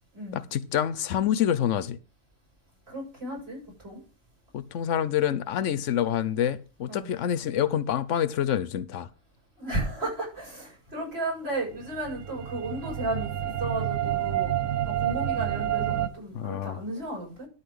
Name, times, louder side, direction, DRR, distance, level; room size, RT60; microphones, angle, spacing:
voice 1, 0.3-2.0 4.5-9.1 16.3-16.8, left 10 dB, 80° left, 1.1 m, -27 dB
voice 2, 2.9-4.0 6.9-7.1 9.6-14.5 14.9-17.5, right 1 dB, 55° right, 8.1 m, -34 dB
sound 1, 11.7-16.1, right 11 dB, 90° right, 1.2 m, -29 dB
12.5 x 4.2 x 7.8 m
omnidirectional pair, 1.2 m